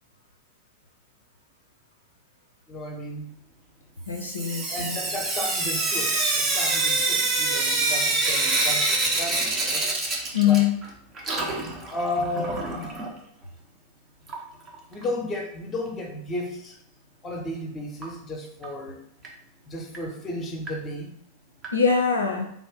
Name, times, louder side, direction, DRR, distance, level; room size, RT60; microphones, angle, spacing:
voice 1, 2.7-3.3 4.7-9.8 10.4-10.6 11.9-12.9 14.9-16.8 17.2-19.0 19.7-21.2, left 1 dB, 20° left, 2 dB, 0.8 m, -33 dB
voice 2, 4.1-5.0 10.3-10.8 21.7-22.5, left 7 dB, 75° left, 1 dB, 0.4 m, -23 dB
Sink (filling or washing) / Drip, 4.1-10.9 11.1-13.1 14.3-14.4 14.7-14.8 15.0-15.1 18.0-18.1 18.6-18.7 19.2-19.3 19.9-20.0 20.7-20.8 21.6-21.7, right 2 dB, 25° right, 0.7 m, -26 dB
3.5 x 2.5 x 3.6 m, 0.74 s
figure-of-eight pair, 90°, 0 cm